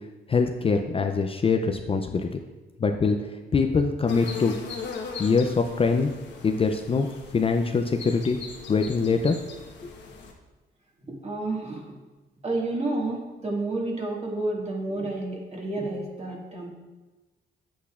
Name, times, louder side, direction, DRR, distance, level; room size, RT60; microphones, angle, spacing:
voice 1, 0.3-2.4 2.8-4.6 5.2-6.1 6.4-7.1 7.3-8.4 8.7-9.4 9.8-9.9, left 4 dB, 30° left, 5 dB, 0.5 m, -23 dB
sound 1, 4.1-10.3, left 5 dB, 65° left, 1.3 m, -40 dB
voice 2, 11.1-12.0 12.4-16.7, right 2 dB, 35° right, -2 dB, 1.9 m, -30 dB
8.3 x 8.2 x 2.5 m, 1.2 s
cardioid pair, 90°, 20 cm